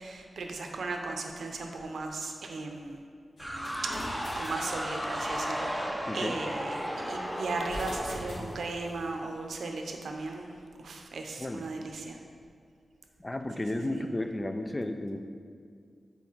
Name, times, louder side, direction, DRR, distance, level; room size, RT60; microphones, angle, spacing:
voice 1, 0.0-3.1 3.5-5.8 6.1-12.2 13.7-14.0, right 3 dB, 85° right, 3 dB, 0.6 m, -37 dB
sound 1, 3.4-5.4 7.5-9.1, equal, 75° left, 1.4 m, -43 dB
sound 2, 3.4-9.2, equal, 5° right, 0.7 m, -35 dB
voice 2, 13.2-15.2, left 1 dB, 20° left, 7 dB, 0.4 m, -33 dB
5.9 x 4.0 x 4.5 m, 2.2 s
wide cardioid pair, 90°, 0 cm